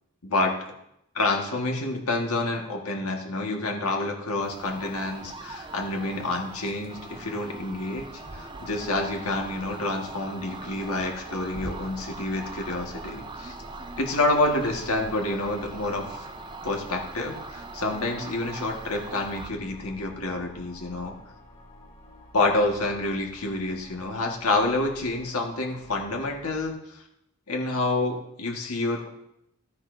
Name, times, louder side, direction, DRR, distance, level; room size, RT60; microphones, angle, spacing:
voice 1, 0.2-0.7 1.1-13.5 14.0-16.2 16.6-21.2 22.3-27.0 27.5-29.1, left 2 dB, 80° left, 1 dB, 1.6 m, -28 dB
sound 1, 4.4-19.5, right 3 dB, 20° right, 0.4 m, -41 dB
sound 2, 8.2-26.7, equal, 30° left, 2.2 m, -48 dB
13.5 x 9.3 x 2.7 m, 0.80 s
head